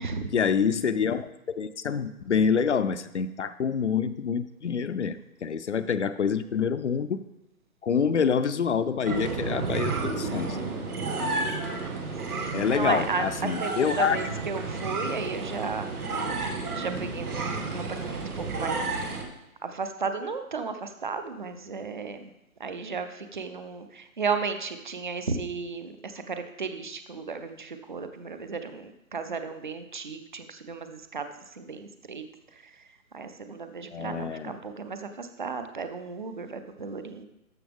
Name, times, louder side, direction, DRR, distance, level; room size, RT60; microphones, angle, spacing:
voice 1, 0.3-7.2 7.8-10.6 11.0-11.1 12.5-14.2 33.9-34.5, left 6 dB, 55° left, 12 dB, 0.6 m, -27 dB
sound 1, 9.0-19.2, right 3 dB, 90° right, 2.1 m, -31 dB
voice 2, 9.4-9.9 12.3-18.8 19.0-19.2 19.6-22.3 22.6-32.2 32.5-32.9 33.1-37.2, right 5 dB, 35° right, 8 dB, 0.5 m, -35 dB
13.0 x 6.8 x 3.5 m, 0.91 s
hypercardioid pair, 165°, 43 cm